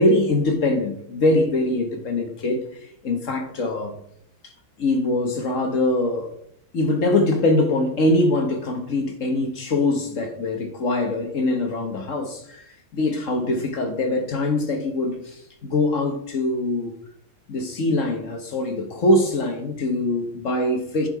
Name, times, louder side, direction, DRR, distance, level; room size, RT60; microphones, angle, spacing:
voice 1, 0.0-4.0 4.4-4.5 4.8-6.3 6.7-16.9 17.5-21.1, left 2 dB, 45° left, 1.2 m, -23 dB
10.5 x 5.7 x 4.7 m
omnidirectional pair, 2.2 m